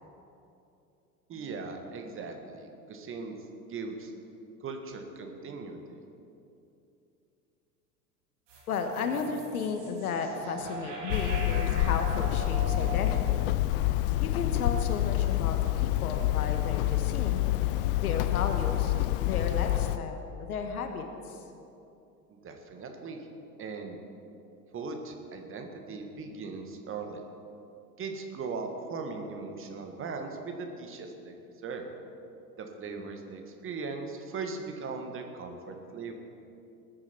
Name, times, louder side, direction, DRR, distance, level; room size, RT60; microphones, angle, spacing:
voice 1, 1.3-3.3 3.7-4.1 4.6-6.0 22.4-23.3 23.6-24.0 24.7-27.2 28.0-31.3 31.6-31.9 32.6-36.1, right 4 dB, 25° right, 4 dB, 1.6 m, -39 dB
sound 1, 8.5-14.8, right 3 dB, 55° right, 3.9 m, -41 dB
voice 2, 8.7-13.5 14.2-17.4 17.9-21.4, left 5 dB, 65° left, 6 dB, 1.3 m, -34 dB
Hammer, 11.1-20.0, left 15 dB, 40° left, 0.4 m, -27 dB
20.0 x 9.3 x 4.5 m, 2.8 s
figure-of-eight pair, 80°, 47 cm